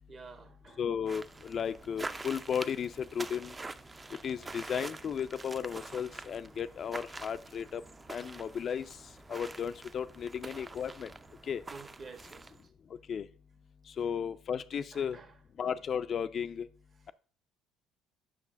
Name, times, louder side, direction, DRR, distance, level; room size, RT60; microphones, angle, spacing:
voice 1, 0.1-0.8 11.7-12.5 14.9-15.3, right 4 dB, 45° right, 8 dB, 1.1 m, -49 dB
voice 2, 0.8-3.5 4.2-7.8 8.1-8.8 9.3-11.1 11.5-11.6 13.1-13.3 14.0-15.2 15.6-16.7, left 7 dB, 50° left, 13 dB, 0.3 m, -34 dB
sound 1, 1.1-12.6, right 3 dB, 25° right, 0.4 m, -46 dB
7.4 x 5.9 x 2.5 m, 0.42 s
hypercardioid pair, 60°, 0 cm